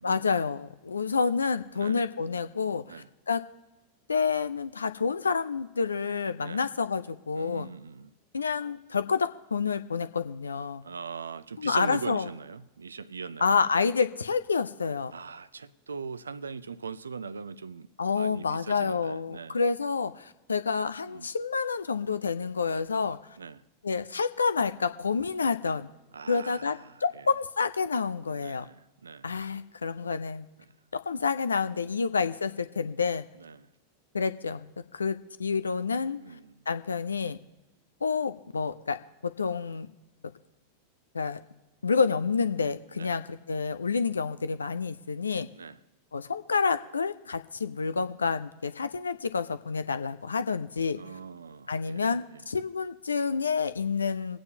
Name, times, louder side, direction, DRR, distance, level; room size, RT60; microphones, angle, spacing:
voice 1, 0.0-3.4 4.1-7.7 8.3-10.8 11.6-12.3 13.4-15.1 18.0-23.4 23.8-25.9 26.3-28.7 29.2-30.5 30.9-33.3 34.1-36.2 36.7-37.4 38.0-39.0 39.2-39.9 41.1-41.4 41.8-45.5 46.1-51.0 51.7-54.4, left 5 dB, 75° left, 0.5 m, -29 dB
voice 2, 7.4-8.1 10.8-13.6 15.1-19.6 21.1-21.3 23.4-23.6 26.1-27.3 28.4-29.3 31.7-31.9 33.4-33.7 36.2-36.7 42.9-43.1 45.5-45.8 51.0-52.5, right 5 dB, 75° right, 0.5 m, -41 dB
25.0 x 8.8 x 2.8 m
figure-of-eight pair, 90°, 0 cm